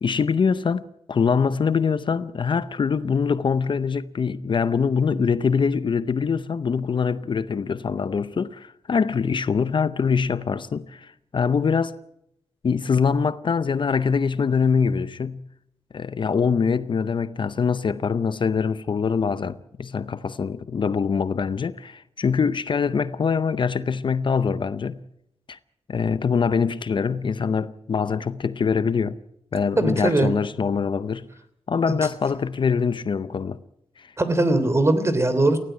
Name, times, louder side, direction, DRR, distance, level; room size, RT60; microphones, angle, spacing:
voice 1, 0.0-12.0 12.6-15.5 15.9-25.0 25.5-25.6 25.9-29.2 29.5-31.3 31.7-33.6 34.0-34.1, left 5 dB, 50° left, 0.7 m, -24 dB
voice 2, 29.8-30.3 34.2-35.6, right 2 dB, 25° right, 3.1 m, -20 dB
19.5 x 16.5 x 9.1 m
cardioid pair, 90°, 11 cm